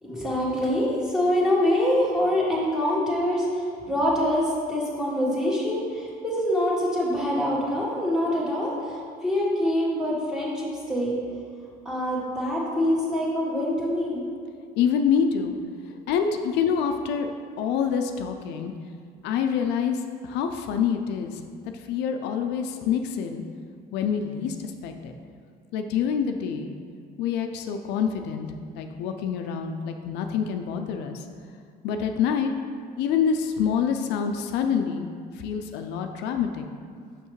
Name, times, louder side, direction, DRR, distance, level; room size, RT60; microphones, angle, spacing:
voice 1, 0.0-11.1 11.8-14.3, left 1 dB, 5° right, -6 dB, 1.5 m, -25 dB
voice 2, 14.8-15.5 16.1-17.3 17.6-18.7 19.2-21.4 21.9-23.4 23.9-25.2 25.7-26.7 27.2-28.5 28.8-31.2 31.8-32.5 33.0-35.1 35.4-36.6, left 7 dB, 90° left, 5 dB, 0.4 m, -26 dB
5.8 x 5.5 x 3.1 m, 2.1 s
cardioid pair, 110°, 17 cm